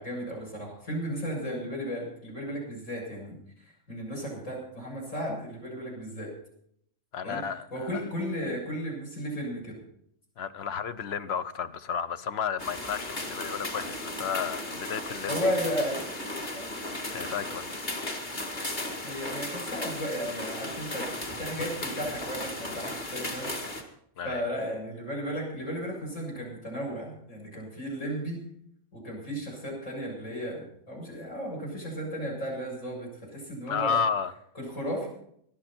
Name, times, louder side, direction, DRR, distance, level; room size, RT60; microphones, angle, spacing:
voice 1, 0.0-6.3 7.2-7.4 7.7-9.8 15.3-16.0 16.5-16.6 19.0-23.8 24.2-28.4 28.9-34.0 34.6-35.1, equal, 75° left, 7.7 m, -34 dB
voice 2, 7.1-8.0 10.4-15.5 17.1-17.7 24.2-24.4 33.7-34.3, left 6 dB, 60° left, 1.0 m, -32 dB
sound 1, 12.6-23.8, left 1 dB, 40° left, 2.2 m, -35 dB
20.0 x 12.0 x 4.4 m
omnidirectional pair, 1.3 m